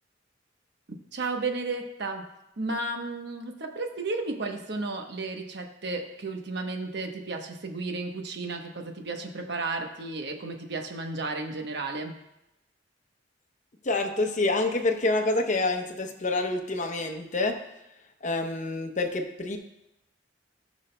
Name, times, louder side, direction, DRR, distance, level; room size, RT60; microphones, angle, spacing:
voice 1, 1.1-2.3 2.6-12.2, right 3 dB, 65° right, 3 dB, 1.0 m, -33 dB
voice 2, 13.8-17.6 18.2-19.6, left 2 dB, 40° left, 5 dB, 0.8 m, -27 dB
16.5 x 6.2 x 2.2 m, 0.88 s
head